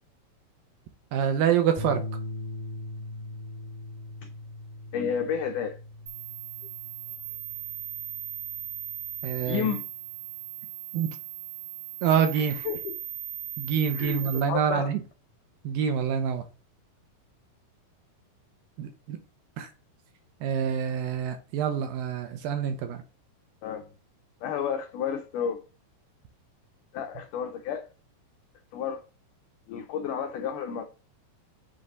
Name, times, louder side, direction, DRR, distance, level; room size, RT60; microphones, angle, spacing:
voice 1, 1.1-2.0 9.2-9.7 10.9-11.1 12.0-12.6 13.6-15.0 15.6-16.4 18.8-19.2 19.6-19.7 20.4-23.0, right 8 dB, 80° right, 2.3 m, -26 dB
sound 1, 1.8-10.2, left 2 dB, 35° right, 0.9 m, -41 dB
voice 2, 4.9-5.8 9.5-9.9 12.3-13.0 13.9-14.9 23.6-23.9 24.4-25.6 26.9-27.9 28.7-29.0 29.7-30.8, left 7 dB, 90° left, 1.8 m, -31 dB
sound 2, 6.1-14.4, right 11 dB, 55° right, 2.7 m, -38 dB
7.6 x 3.3 x 4.0 m
omnidirectional pair, 4.6 m